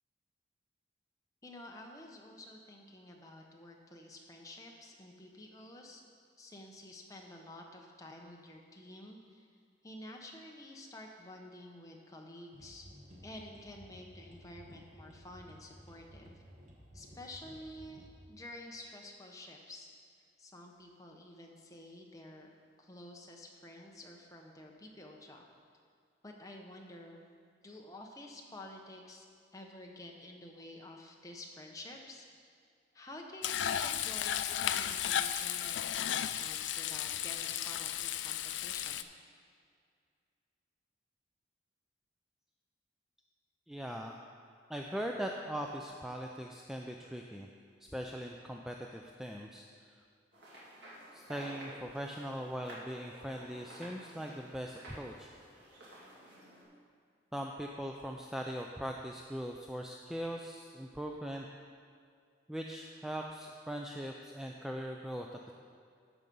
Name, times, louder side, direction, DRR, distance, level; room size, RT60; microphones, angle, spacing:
voice 1, 1.4-6.0 6.4-9.5 9.8-12.9 13.2-16.3 16.9-19.9 20.4-22.5 22.8-25.5 26.2-27.2 27.6-29.3 29.5-32.4 32.9-39.1, left 1 dB, 20° left, 1 dB, 0.9 m, -50 dB
sound 1, 12.5-18.1, equal, 40° right, 1.3 m, -55 dB
Frying (food), 33.4-39.0, left 10 dB, 75° left, 0.4 m, -34 dB
voice 2, 43.7-44.2 44.7-47.5 47.9-50.0 51.1-55.3 57.3-61.5 62.5-65.5, equal, ahead, 1 dB, 0.4 m, -40 dB
sound 2, 50.3-56.6, equal, 65° right, 2.4 m, -52 dB
13.5 x 4.9 x 5.4 m, 2.2 s
head